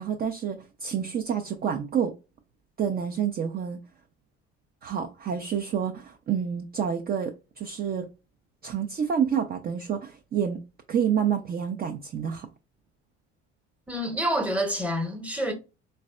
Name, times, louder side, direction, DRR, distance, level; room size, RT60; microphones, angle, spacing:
voice 1, 0.0-2.1 2.8-3.8 4.8-8.1 8.6-10.6 10.9-12.5, right 8 dB, 30° right, 0.5 m, -28 dB
voice 2, 13.9-15.5, equal, 5° right, 0.9 m, -27 dB
4.0 x 2.1 x 2.3 m
hypercardioid pair, 60°, 32 cm